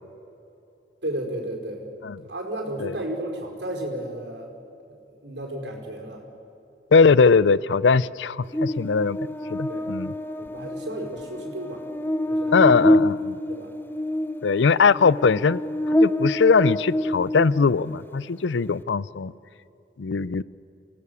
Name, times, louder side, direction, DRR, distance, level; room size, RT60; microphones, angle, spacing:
voice 1, 1.0-1.8 2.3-4.5 5.2-6.2 9.7-9.9 10.4-11.8 12.3-12.9 13.5-13.7, right 1 dB, 75° right, 5.0 m, -33 dB
voice 2, 6.9-9.2 9.5-10.1 12.5-13.4 14.4-15.6 16.0-19.3 20.0-20.4, left 5 dB, 80° left, 0.5 m, -20 dB
Buzz, 8.5-18.0, left 1 dB, 10° left, 0.8 m, -26 dB
28.5 x 18.0 x 7.0 m
head